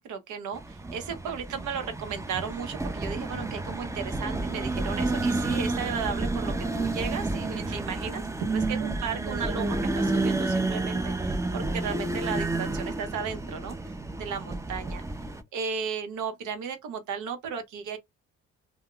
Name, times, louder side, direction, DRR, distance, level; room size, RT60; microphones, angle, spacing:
voice 1, 0.0-13.9 14.2-15.0 15.5-18.0, right 6 dB, 75° right, 0.7 m, -35 dB
sound 1, 0.5-15.4, right 2 dB, 10° right, 0.4 m, -30 dB
2.2 x 2.1 x 3.6 m
cardioid pair, 90°, 30 cm